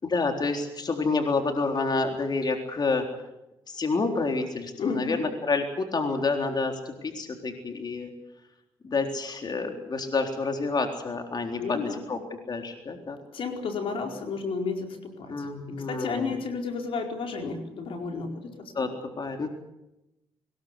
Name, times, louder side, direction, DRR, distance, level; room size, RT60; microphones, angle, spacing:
voice 1, 0.0-3.0 3.7-8.1 8.8-12.2 12.5-13.2 15.3-16.4 18.7-18.9 19.2-19.5, left 3 dB, 45° left, 4 dB, 3.9 m, -28 dB
voice 2, 4.8-5.3 11.6-12.0 13.3-18.9, left 4 dB, 70° left, 3 dB, 4.6 m, -32 dB
22.5 x 20.5 x 8.3 m, 0.90 s
cardioid pair, 60°, 10 cm